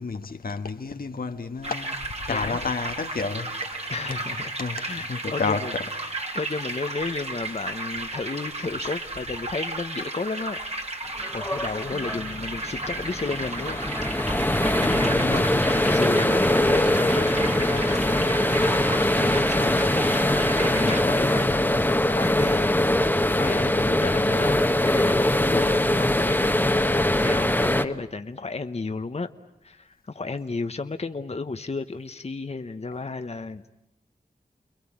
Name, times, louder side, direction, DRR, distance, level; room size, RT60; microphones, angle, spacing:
voice 1, 0.0-2.0 2.3-3.8 4.6-4.8 5.1-5.8 11.9-12.3 14.7-15.4, left 4 dB, 75° left, 1.4 m, -31 dB
sound 1, 1.6-21.0, right 2 dB, 45° right, 2.6 m, -34 dB
voice 2, 2.3-2.6 3.9-4.5 4.8-5.7 6.0-10.7 11.3-13.8 15.3-18.4 18.6-22.7 23.4-29.3 29.6-33.6, left 3 dB, 45° left, 1.0 m, -33 dB
sound 2, 11.2-27.8, left 1 dB, 10° left, 1.3 m, -22 dB
29.5 x 22.0 x 8.7 m
cardioid pair, 45°, 15 cm